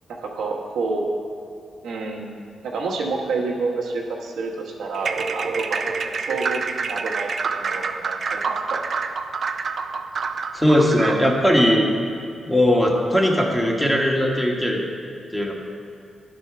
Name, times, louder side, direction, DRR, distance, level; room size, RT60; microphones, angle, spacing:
voice 1, 0.1-1.1 1.8-8.8, right 3 dB, 85° right, -1 dB, 1.1 m, -29 dB
sound 1, 4.9-11.4, right 5 dB, 60° right, 0.4 m, -27 dB
voice 2, 10.5-11.9 12.5-14.8 15.3-15.5, equal, 5° left, -1 dB, 1.4 m, -19 dB
10.5 x 4.3 x 5.7 m, 2.5 s
cardioid pair, 65°, 0 cm